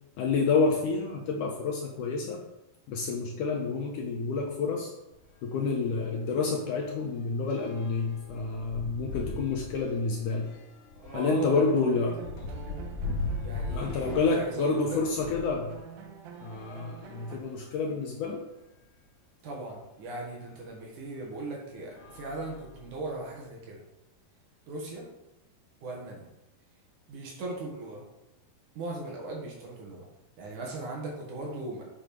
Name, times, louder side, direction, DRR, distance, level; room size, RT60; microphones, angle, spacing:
voice 1, 0.2-2.4 2.9-4.9 5.4-10.5 11.1-12.2 13.7-15.7 16.4-18.4, left 4 dB, 70° left, 1 dB, 2.1 m, -29 dB
sound 1, 5.1-5.3 5.7-5.8 6.1-15.6 16.3-17.7 18.3-18.4 18.7-18.8 20.5-20.6 21.2-21.4 21.9-23.2, left 2 dB, 90° left, 3.5 m, -39 dB
voice 2, 11.0-12.9 13.4-15.0 19.4-23.8 24.7-25.1 25.8-26.3 27.1-28.1 28.8-30.1 30.4-31.8, right 2 dB, 60° right, -1 dB, 2.8 m, -39 dB
sound 2, 11.6-15.3 15.7-17.4, right 7 dB, 75° right, 2.7 m, -47 dB
7.8 x 6.6 x 5.2 m, 0.96 s
omnidirectional pair, 4.4 m